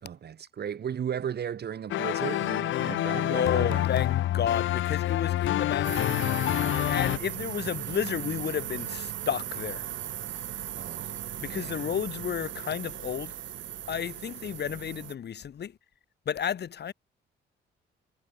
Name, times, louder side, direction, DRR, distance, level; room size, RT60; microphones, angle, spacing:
voice 1, 0.0-3.8 10.7-11.2 11.4-11.8, right 8 dB, 55° right, 3.3 m, -35 dB
sound 1, 1.9-7.2, left 14 dB, 75° left, 1.1 m, -27 dB
voice 2, 3.1-6.2 6.9-9.8 11.4-13.3 13.9-15.7 16.3-16.9, left 8 dB, 60° left, 4.6 m, -32 dB
sound 2, 5.8-15.1, right 11 dB, 70° right, 3.2 m, -37 dB
cardioid pair, 90°, 20 cm